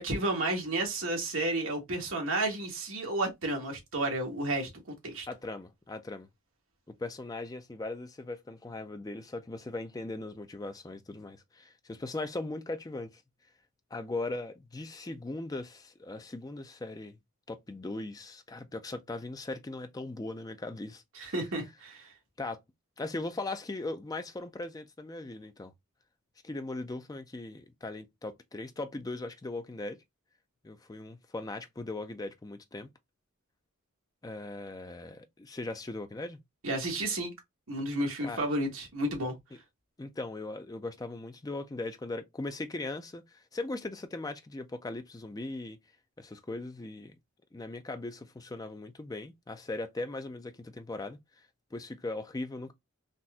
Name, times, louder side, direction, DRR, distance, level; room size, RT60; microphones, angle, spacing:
voice 1, 0.0-4.7 5.0-5.3 21.2-22.1 36.6-37.3 37.7-39.3, right 2 dB, 65° right, 1.3 m, -31 dB
voice 2, 5.3-6.3 7.0-13.2 13.9-17.2 17.5-21.0 22.4-22.6 23.0-25.7 26.4-30.0 30.6-32.9 34.2-36.4 38.2-38.4 40.0-45.8 46.2-47.2 47.5-51.2 51.7-52.7, left 2 dB, 15° left, 0.4 m, -39 dB
4.0 x 2.6 x 2.2 m
head